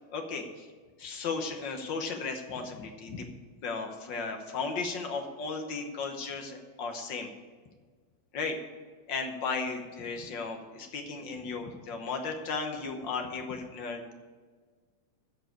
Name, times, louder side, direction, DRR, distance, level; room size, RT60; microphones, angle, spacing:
voice 1, 0.1-0.7 1.0-3.3 3.6-7.3 8.3-8.6 9.1-14.1, left 4 dB, 60° left, 4 dB, 1.3 m, -35 dB
13.5 x 4.7 x 8.3 m, 1.5 s
omnidirectional pair, 3.3 m